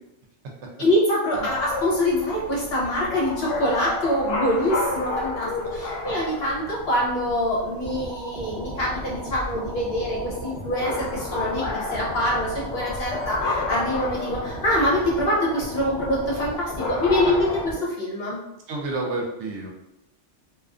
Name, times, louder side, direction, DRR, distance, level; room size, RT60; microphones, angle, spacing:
voice 1, 0.8-18.4, left 1 dB, 60° left, -5 dB, 1.0 m, -25 dB
sound 1, 1.3-17.6, left 3 dB, 85° left, 0.9 m, -32 dB
sound 2, 7.8-17.8, equal, 40° right, 0.7 m, -36 dB
voice 2, 18.7-19.7, right 2 dB, 75° right, 0 dB, 0.8 m, -30 dB
2.4 x 2.4 x 2.3 m, 0.88 s
omnidirectional pair, 1.2 m